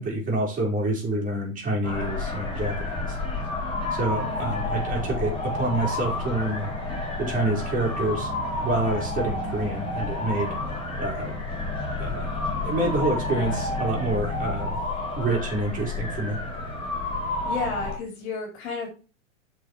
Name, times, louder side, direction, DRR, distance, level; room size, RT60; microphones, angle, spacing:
voice 1, 0.0-3.2 3.9-6.7 7.2-8.3 8.6-10.5 11.0-11.3 12.0-12.3 12.6-14.8 15.2-16.4, right 2 dB, 20° right, -1 dB, 5.0 m, -27 dB
sound 1, 1.8-18.0, left 2 dB, 15° left, 4.5 m, -30 dB
voice 2, 4.2-4.7 17.0-18.9, left 4 dB, 50° left, 2 dB, 3.7 m, -33 dB
8.1 x 6.3 x 4.9 m, 0.33 s
figure-of-eight pair, 105°, 40 cm